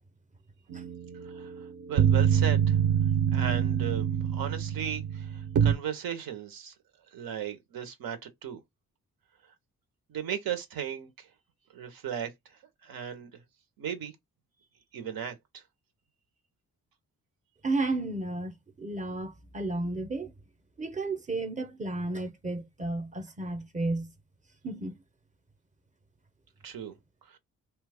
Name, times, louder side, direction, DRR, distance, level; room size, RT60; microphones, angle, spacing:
sound 1, 0.7-5.7, right 8 dB, 60° right, 0.6 m, -26 dB
voice 1, 1.2-2.8 3.3-6.7 7.1-8.6 10.1-11.3 11.7-12.3 12.8-13.3 13.8-14.1 14.9-15.6 26.6-27.0 27.3-27.4, right 9 dB, 85° right, 0.8 m, -36 dB
voice 2, 17.6-20.3 20.8-24.1 24.6-25.0, right 2 dB, 20° right, 0.7 m, -33 dB
2.9 x 2.3 x 3.4 m
cardioid pair, 85°, 34 cm